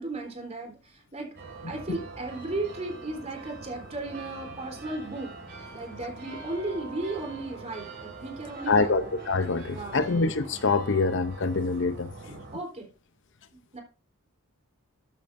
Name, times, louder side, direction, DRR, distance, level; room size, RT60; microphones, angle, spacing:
voice 1, 0.0-1.3 1.7-5.3 5.7-9.1 9.6-10.1 12.5-12.9 13.5-13.8, right 2 dB, 30° right, 3.6 m, -35 dB
sound 1, 1.4-12.6, right 3 dB, 50° right, 4.0 m, -43 dB
voice 2, 8.7-12.1, left 3 dB, 60° left, 0.7 m, -25 dB
13.5 x 8.6 x 2.6 m
head